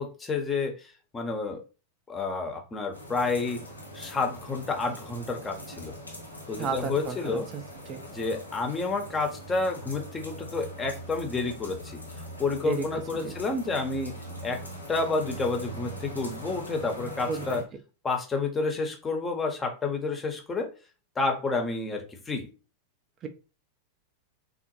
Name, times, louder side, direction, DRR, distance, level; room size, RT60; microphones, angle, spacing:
voice 1, 0.0-1.6 2.1-3.6 3.9-5.9 6.5-7.5 8.1-12.0 12.4-14.1 14.4-14.6 14.9-17.6 18.0-20.7 21.2-22.5, left 3 dB, 15° left, 3 dB, 0.7 m, -30 dB
sound 1, 2.9-17.6, equal, 85° left, 0.9 m, -42 dB
voice 2, 6.6-8.0 12.6-12.9 13.1-13.3 17.3-17.6 23.2-23.3, right 4 dB, 30° right, 8 dB, 0.4 m, -33 dB
3.6 x 2.0 x 2.9 m, 0.33 s
figure-of-eight pair, 90°, 0 cm